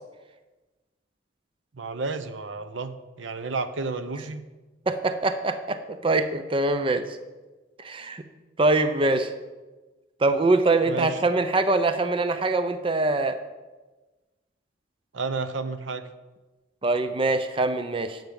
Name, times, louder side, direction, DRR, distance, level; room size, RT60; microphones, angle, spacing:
voice 1, 1.7-2.9 3.2-4.4 10.9-11.2 15.1-16.1, right 3 dB, 80° right, 11 dB, 0.7 m, -31 dB
voice 2, 4.9-7.1 7.8-8.2 8.6-9.3 10.2-13.4 16.8-18.2, right 2 dB, 30° right, 9 dB, 0.6 m, -23 dB
11.5 x 8.0 x 5.3 m, 1.2 s
head